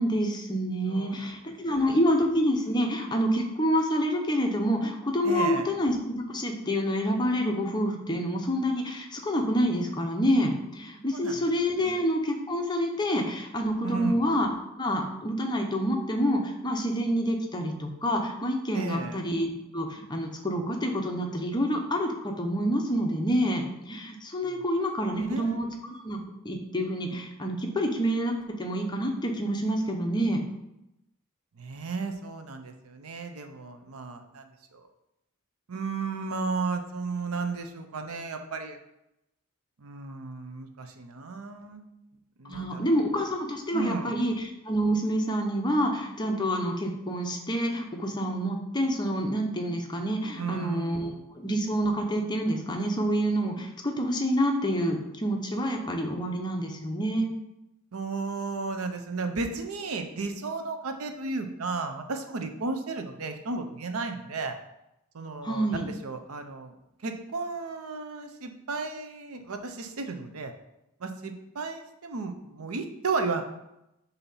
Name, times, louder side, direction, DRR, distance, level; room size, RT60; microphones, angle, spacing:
voice 1, 0.0-14.5 14.8-26.2 26.4-30.4 42.4-57.3 65.4-65.9, equal, 20° left, 2 dB, 0.7 m, -27 dB
voice 2, 0.9-1.4 1.7-2.0 5.2-5.7 11.1-11.4 11.8-12.0 13.8-14.2 18.7-19.2 24.4-24.6 25.2-25.6 31.6-34.9 35.7-38.8 39.8-41.8 42.4-42.8 43.7-44.2 50.4-51.2 57.9-64.5 65.1-66.7 67.0-70.5 71.0-73.4, right 4 dB, 80° right, 6 dB, 0.7 m, -34 dB
6.9 x 2.8 x 5.4 m, 0.88 s
head